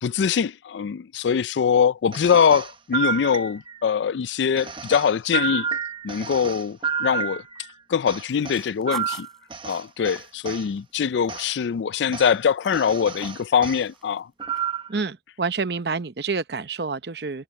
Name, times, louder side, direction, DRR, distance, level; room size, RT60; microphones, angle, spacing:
voice 1, 0.0-5.7 6.0-7.4 7.9-9.3 9.6-14.3, left 7 dB, 75° left, 0.4 m, -23 dB
sound 1, 2.1-3.9 4.6-7.7 8.1-10.7 11.3-11.5 12.1-12.3 12.7-13.8 14.4-15.0, right 6 dB, 30° right, 0.9 m, -30 dB
sound 2, 8.3-11.6 12.0-13.5 13.8-14.2 14.5-14.6, equal, ahead, 5.3 m, -46 dB
voice 2, 14.9-17.4, right 4 dB, 60° right, 0.8 m, -28 dB
head